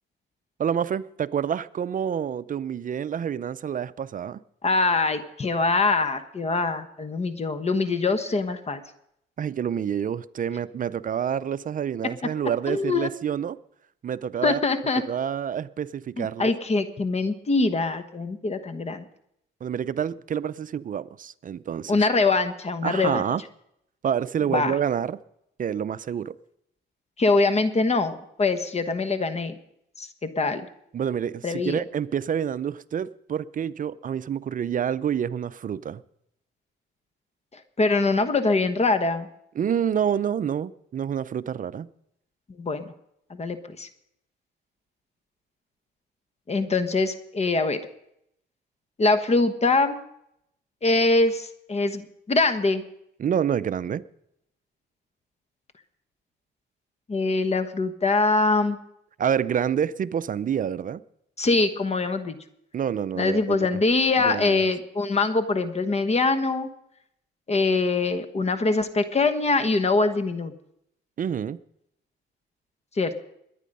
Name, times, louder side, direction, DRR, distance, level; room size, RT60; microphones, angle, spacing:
voice 1, 0.6-4.4 9.4-13.6 14.0-14.6 15.1-16.5 19.6-22.0 22.8-23.4 24.0-25.2 25.6-26.4 30.9-36.0 39.6-41.9 53.2-54.0 59.2-61.0 62.7-63.7 64.2-64.6 71.2-71.6, right 8 dB, 45° right, 17 dB, 0.5 m, -28 dB
voice 2, 4.6-8.8 12.0-12.1 12.7-13.1 14.4-15.0 16.2-19.1 21.9-23.2 24.5-24.7 27.2-29.5 30.0-30.7 31.4-31.8 37.8-39.3 42.6-42.9 43.3-43.9 46.5-47.8 49.0-50.0 50.8-52.8 57.1-58.8 61.4-62.4 63.2-66.7 67.5-70.5 73.0-73.2, left 3 dB, 35° left, 10 dB, 1.2 m, -23 dB
21.5 x 9.4 x 5.4 m, 0.77 s
cardioid pair, 90°, 20 cm